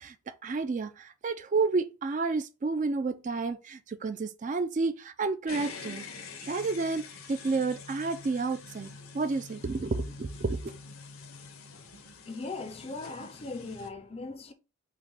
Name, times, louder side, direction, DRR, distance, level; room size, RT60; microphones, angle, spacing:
voice 1, 0.0-6.1 6.4-8.9 9.1-10.7, right 4 dB, 35° right, 0.3 m, -30 dB
sound 1, 5.5-13.9, left 4 dB, 70° left, 0.8 m, -46 dB
voice 2, 12.2-14.5, left 3 dB, 25° left, 0.5 m, -39 dB
5.9 x 2.2 x 3.9 m
head